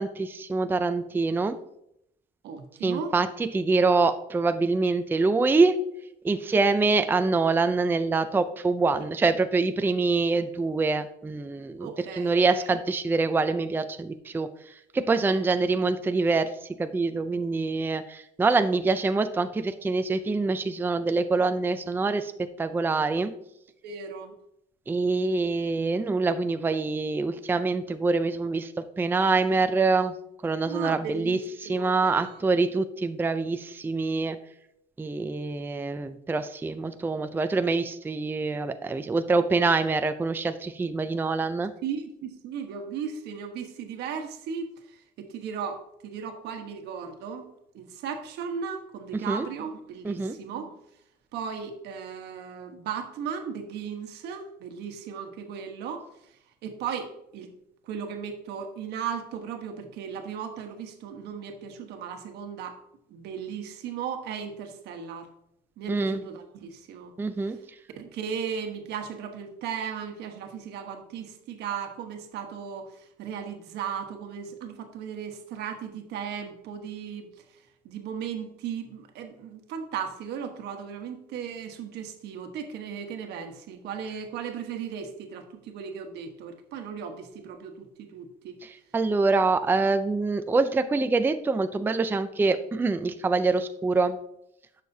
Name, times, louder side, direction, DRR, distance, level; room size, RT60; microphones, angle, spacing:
voice 1, 0.0-1.6 2.8-5.8 6.2-11.9 12.2-14.5 14.9-16.5 16.8-22.3 22.6-23.3 24.9-30.1 30.4-31.4 31.7-34.4 35.0-41.7 49.1-49.5 50.0-50.4 65.9-66.2 67.2-67.6 88.9-94.2, right 3 dB, 10° right, 9 dB, 0.4 m, -25 dB
voice 2, 2.4-3.1 9.0-9.1 11.8-12.7 15.2-15.4 23.8-24.3 30.7-31.4 31.6-32.4 41.8-47.5 47.7-50.7 51.3-57.5 57.8-62.8 63.1-65.3 65.8-67.1 67.5-67.6 68.0-88.6, right 7 dB, 80° right, 5 dB, 1.2 m, -36 dB
11.0 x 6.5 x 2.7 m, 0.78 s
cardioid pair, 110°, 17 cm